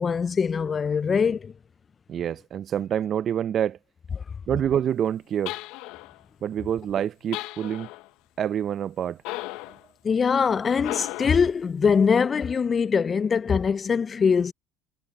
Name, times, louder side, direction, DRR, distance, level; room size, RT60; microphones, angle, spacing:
voice 1, 0.0-1.5 10.0-14.5, left 6 dB, 30° left, 0.3 m, -22 dB
voice 2, 2.1-3.8 4.5-5.6 6.4-7.9 8.4-9.2, right 9 dB, 45° right, 0.4 m, -27 dB
sound 1, 5.5-6.2 7.3-8.1 9.2-9.8 10.8-11.5, left 19 dB, 75° left, 0.8 m, -35 dB
supercardioid pair, 90°, 0 cm